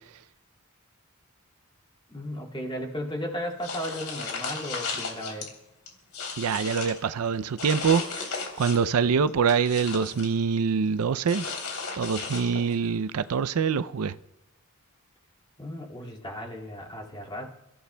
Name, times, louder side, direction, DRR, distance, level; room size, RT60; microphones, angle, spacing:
voice 1, 2.1-5.5 15.6-17.5, equal, 20° left, 2.2 m, -35 dB
Putting item in a handbag, 3.6-5.5 5.9-7.0 7.6-8.9 9.3-10.3 11.3-12.8, left 4 dB, 80° left, 3.2 m, -35 dB
voice 2, 6.4-11.5 11.9-14.1, right 6 dB, 80° right, 0.5 m, -25 dB
29.0 x 14.0 x 2.2 m
head